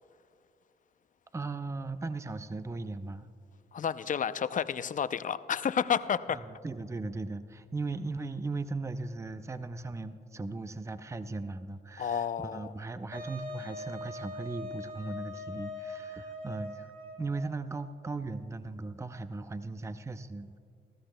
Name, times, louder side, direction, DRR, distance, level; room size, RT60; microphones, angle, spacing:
voice 1, 1.3-3.3 6.3-16.9 17.2-20.6, right 3 dB, 15° right, 11 dB, 0.6 m, -38 dB
voice 2, 3.7-6.4 12.0-12.7, left 8 dB, 50° left, 14 dB, 0.5 m, -31 dB
Wind instrument woodwind instrument, 13.1-17.5, left 2 dB, 50° right, 3.7 m, -42 dB
20.5 x 14.5 x 2.2 m, 2.4 s
supercardioid pair, 50°, 17 cm